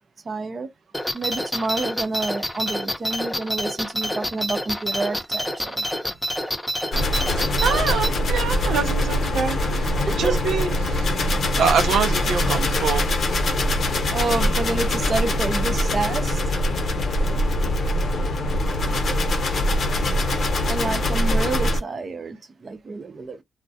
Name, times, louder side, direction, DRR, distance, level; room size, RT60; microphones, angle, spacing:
voice 1, 0.2-0.7 1.1-5.8 10.1-10.4 14.1-16.4 20.7-23.4, right 3 dB, 45° right, 0.6 m, -28 dB
sound 1, 0.9-8.1, equal, 5° left, 0.7 m, -27 dB
sound 2, 6.9-21.8, left 1 dB, 60° left, 0.8 m, -23 dB
voice 2, 7.3-13.4, right 6 dB, 90° right, 0.5 m, -26 dB
2.3 x 2.0 x 2.6 m
cardioid pair, 70°, 0 cm